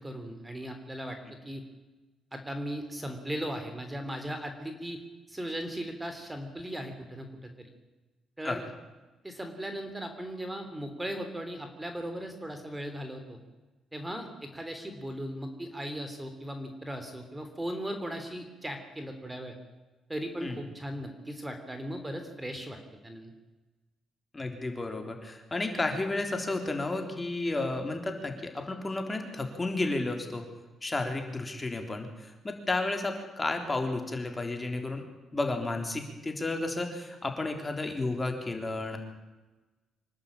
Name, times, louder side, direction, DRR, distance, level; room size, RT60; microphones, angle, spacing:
voice 1, 0.0-1.6 2.3-5.0 5.3-7.7 8.4-8.7 9.2-13.4 13.9-19.6 20.1-22.8 23.0-23.3, equal, 10° right, 6 dB, 3.3 m, -38 dB
voice 2, 24.3-30.5 30.8-35.0 35.3-39.0, left 2 dB, 20° left, 4 dB, 3.6 m, -32 dB
25.5 x 11.5 x 8.9 m, 1.2 s
cardioid pair, 90°, 0 cm